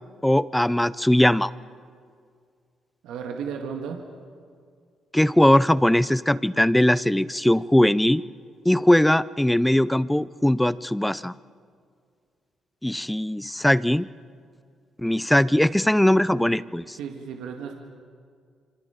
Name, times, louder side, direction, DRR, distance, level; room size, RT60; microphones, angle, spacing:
voice 1, 0.2-1.5 5.1-8.2 8.6-11.3 12.8-14.1 15.0-17.0, left 1 dB, 5° left, 18 dB, 0.5 m, -20 dB
voice 2, 3.0-4.0 17.0-17.7, right 6 dB, 85° right, 2 dB, 2.0 m, -34 dB
28.0 x 25.0 x 5.2 m, 2.2 s
cardioid pair, 90°, 0 cm